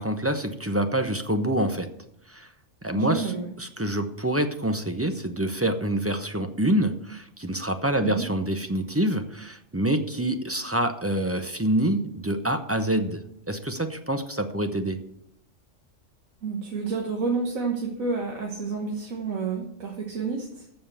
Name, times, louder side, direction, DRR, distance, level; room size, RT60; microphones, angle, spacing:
voice 1, 0.0-1.9 2.3-2.5 2.8-3.3 3.6-15.0, right 1 dB, 15° right, 7 dB, 0.6 m, -26 dB
voice 2, 2.9-3.5 8.0-8.3 16.4-20.7, right 4 dB, 85° right, 0 dB, 1.8 m, -29 dB
14.5 x 5.6 x 6.9 m, 0.76 s
omnidirectional pair, 1.4 m